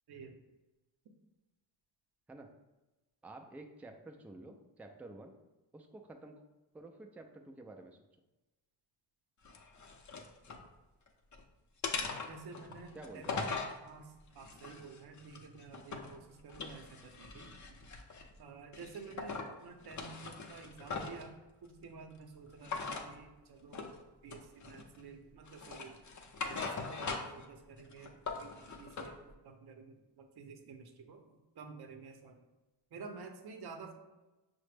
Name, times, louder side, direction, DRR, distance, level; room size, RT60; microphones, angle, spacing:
voice 1, 3.2-5.3 5.7-6.4 6.7-8.0 12.9-13.4, right 2 dB, 5° right, 4 dB, 0.3 m, -50 dB
sound 1, 9.4-10.6 11.1-11.4 11.8-13.8 14.4-16.1 16.5-18.3 18.7-19.5 19.8-21.3 22.6-23.1 23.7-24.0 24.3-25.0 25.5-27.4 27.8-29.1, left 4 dB, 40° left, 0.6 m, -41 dB
voice 2, 12.3-13.4 13.8-17.8 18.4-21.4 21.6-23.9 24.2-26.0 26.4-32.3 32.9-33.9, right 4 dB, 60° right, 5 dB, 0.7 m, -51 dB
5.7 x 2.1 x 3.2 m, 1.1 s
cardioid pair, 65°, 44 cm